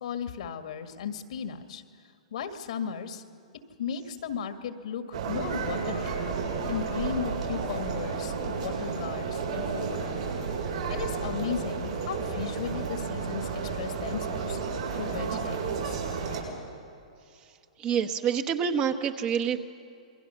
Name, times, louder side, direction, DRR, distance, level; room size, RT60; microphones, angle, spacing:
voice 1, 0.0-1.8 2.3-3.2 3.8-6.2 6.7-10.2 10.9-14.6 14.9-16.0, left 7 dB, 65° left, 7 dB, 1.9 m, -35 dB
sound 1, 5.1-16.4, right 5 dB, 75° right, 7.7 m, -32 dB
voice 2, 17.8-19.6, right 7 dB, 30° right, 7 dB, 1.3 m, -27 dB
28.0 x 22.5 x 5.7 m, 2.5 s
hypercardioid pair, 125°, 4 cm